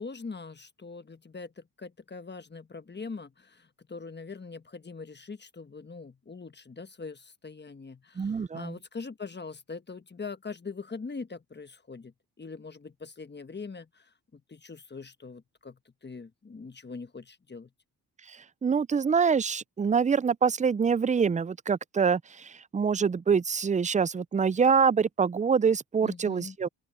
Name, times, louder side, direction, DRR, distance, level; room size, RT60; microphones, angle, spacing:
voice 1, 0.0-17.7 26.0-26.6, left 4 dB, 25° left, 1.2 m, -42 dB
voice 2, 8.2-8.7 18.6-26.7, right 6 dB, 20° right, 0.4 m, -25 dB
open air
cardioid pair, 70°, 39 cm